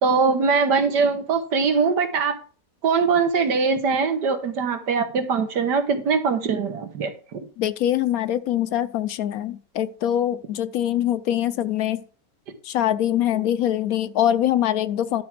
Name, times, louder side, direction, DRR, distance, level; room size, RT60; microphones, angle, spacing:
voice 1, 0.0-2.3 2.8-7.4, right 5 dB, 90° right, 1.9 m, -22 dB
voice 2, 7.6-12.0 12.6-15.2, left 11 dB, 70° left, 1.0 m, -23 dB
11.5 x 4.7 x 5.9 m
omnidirectional pair, 1.8 m